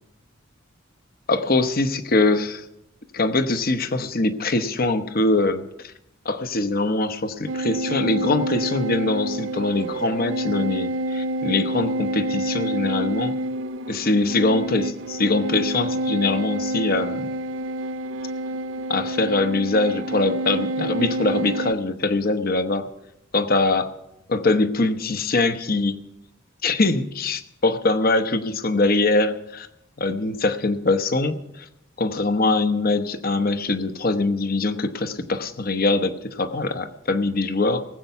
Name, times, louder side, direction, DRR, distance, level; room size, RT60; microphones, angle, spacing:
voice 1, 1.3-2.6 3.1-5.9 6.2-13.4 13.9-17.3 18.9-22.9 23.3-23.9 24.3-26.0 26.6-29.7 30.0-31.7 32.0-37.8, left 2 dB, 50° left, 10 dB, 0.9 m, -23 dB
sound 1, 7.5-21.7, right 1 dB, 70° right, 0.5 m, -28 dB
18.5 x 8.1 x 5.7 m, 0.83 s
head